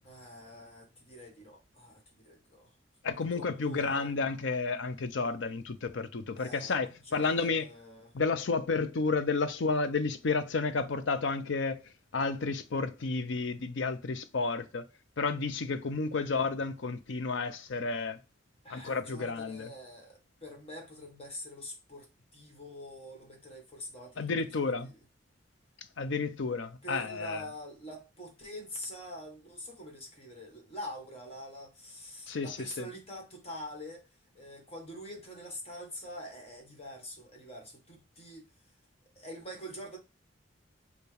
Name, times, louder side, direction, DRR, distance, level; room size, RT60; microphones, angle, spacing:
voice 1, 0.0-2.7 3.3-4.1 6.3-6.7 7.0-8.2 18.6-24.3 24.8-25.0 26.8-34.0 34.3-38.5 39.1-40.0, equal, 30° left, 1.4 m, -45 dB
voice 2, 3.0-7.7 8.1-11.8 12.1-14.8 15.2-18.2 18.7-19.7 24.2-24.9 26.0-27.4 32.3-32.9, left 4 dB, 75° left, 0.6 m, -31 dB
6.9 x 2.4 x 3.3 m
head